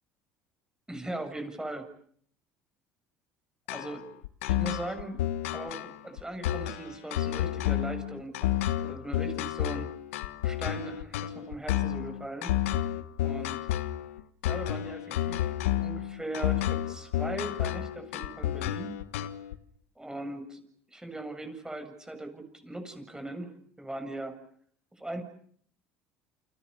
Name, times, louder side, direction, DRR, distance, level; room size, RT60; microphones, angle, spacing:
voice 1, 0.9-1.9 3.7-4.0 4.4-5.2 5.5-9.9 10.4-12.6 13.2-13.6 14.4-19.0 20.0-20.6 20.9-24.4 25.0-25.2, right 1 dB, 10° right, 7 dB, 7.8 m, -39 dB
sound 1, 3.7-19.5, left 12 dB, 85° left, 1.5 m, -30 dB
29.5 x 26.5 x 7.0 m, 0.62 s
hypercardioid pair, 70°, 7 cm